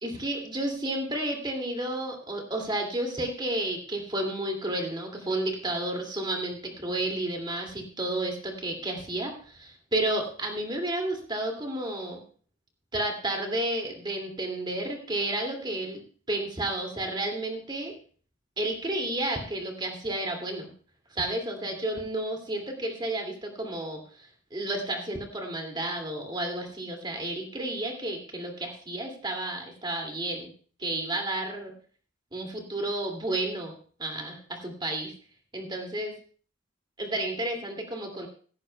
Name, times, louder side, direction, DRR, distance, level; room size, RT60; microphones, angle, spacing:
voice 1, 0.0-12.2 12.9-16.0 16.3-17.9 18.6-20.7 21.1-30.5 30.8-31.7 32.3-33.7 34.0-35.1 35.5-36.1 37.0-38.3, right 1 dB, 20° right, 2 dB, 2.4 m, -31 dB
16.0 x 15.0 x 2.3 m, 0.42 s
head